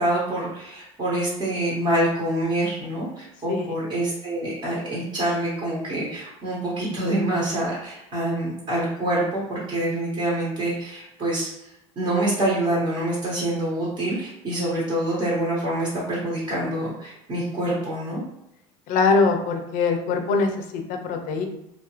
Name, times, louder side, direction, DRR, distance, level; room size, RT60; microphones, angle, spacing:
voice 1, 0.0-11.7 12.0-18.2, right 1 dB, 35° right, -7 dB, 1.1 m, -26 dB
voice 2, 18.9-21.5, left 4 dB, 60° left, 5 dB, 0.5 m, -22 dB
2.8 x 2.4 x 2.9 m, 0.83 s
supercardioid pair, 115°, 15 cm